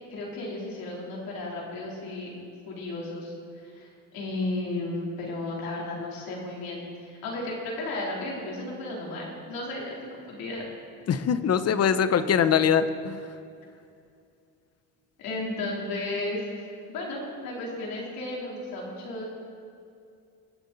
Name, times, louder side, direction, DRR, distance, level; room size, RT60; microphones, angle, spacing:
voice 1, 0.1-2.3 2.7-10.7 15.2-19.3, left 2 dB, 75° left, -3 dB, 3.7 m, -34 dB
voice 2, 11.1-13.2, left 7 dB, 45° left, 12 dB, 0.8 m, -23 dB
22.0 x 8.1 x 4.1 m, 2.5 s
cardioid pair, 90°, 36 cm